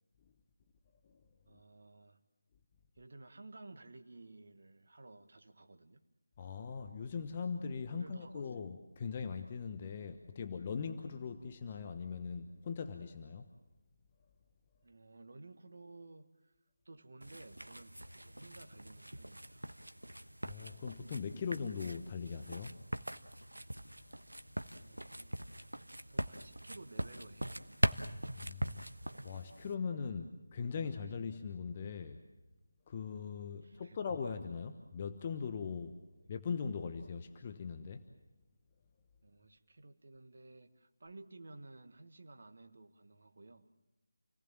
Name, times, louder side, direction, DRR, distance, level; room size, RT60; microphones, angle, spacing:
voice 1, 1.4-2.2 2.9-6.0 7.9-8.5 14.8-16.5 16.8-19.7 24.8-25.6 26.1-27.6 30.1-30.2 33.6-34.0 36.1-36.3 39.2-43.7, right 2 dB, 55° right, 1.5 m, -55 dB
voice 2, 6.4-13.5 20.4-22.8 28.3-28.8 29.2-32.2 32.9-36.0 36.3-38.0, left 5 dB, 30° left, 1.1 m, -40 dB
sound 1, 17.2-29.7, right 1 dB, 90° right, 1.2 m, -41 dB
29.0 x 18.5 x 7.4 m
figure-of-eight pair, 160°, 0 cm